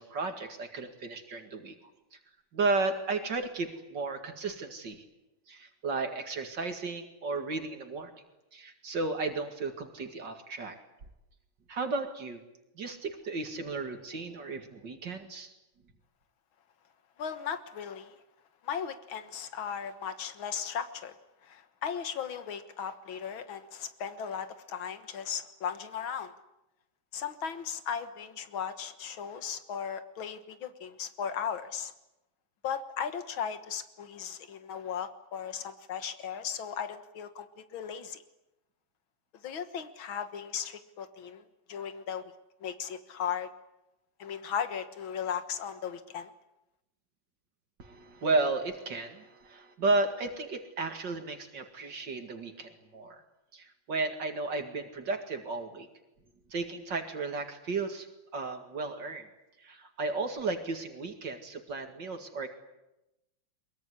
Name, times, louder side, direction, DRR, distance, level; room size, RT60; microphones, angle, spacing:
voice 1, 0.0-1.8 2.1-2.2 2.5-5.0 5.5-8.1 8.5-10.8 11.7-12.4 12.8-15.5 47.8-53.2 53.5-55.9 56.5-58.1 58.3-59.3 59.6-62.5, right 3 dB, 65° right, 6 dB, 2.7 m, -34 dB
voice 2, 17.2-18.2 18.6-21.2 21.4-26.3 27.1-31.9 32.6-38.2 39.4-42.2 42.6-43.5 44.2-46.3, left 7 dB, 85° left, 10 dB, 2.2 m, -37 dB
22.5 x 22.5 x 9.8 m, 0.93 s
omnidirectional pair, 2.1 m